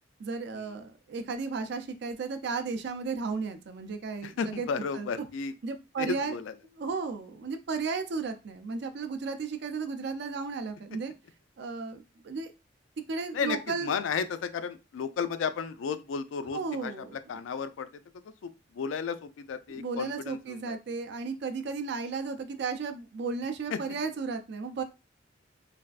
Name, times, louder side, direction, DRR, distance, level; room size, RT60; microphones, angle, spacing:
voice 1, 0.2-4.7 5.0-5.1 5.6-6.3 6.8-11.1 11.6-12.5 13.1-13.9 16.5-17.2 19.7-24.8, right 4 dB, 60° right, 8 dB, 0.4 m, -34 dB
voice 2, 4.2-5.5 6.0-6.6 13.3-20.8 23.7-23.8, left 6 dB, 85° left, 12 dB, 0.3 m, -34 dB
3.3 x 2.3 x 2.4 m, 0.28 s
head